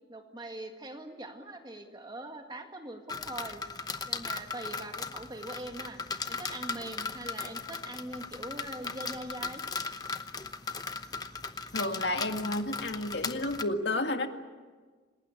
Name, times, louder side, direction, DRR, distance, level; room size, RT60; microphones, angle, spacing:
voice 1, 0.1-3.6 4.1-6.0 6.3-9.6, right 1 dB, 20° right, 4 dB, 2.0 m, -42 dB
sound 1, 3.1-13.6, left 4 dB, 20° left, 0.9 m, -38 dB
voice 2, 11.7-14.3, left 2 dB, 65° left, 5 dB, 2.0 m, -31 dB
27.5 x 19.0 x 8.6 m, 1.4 s
head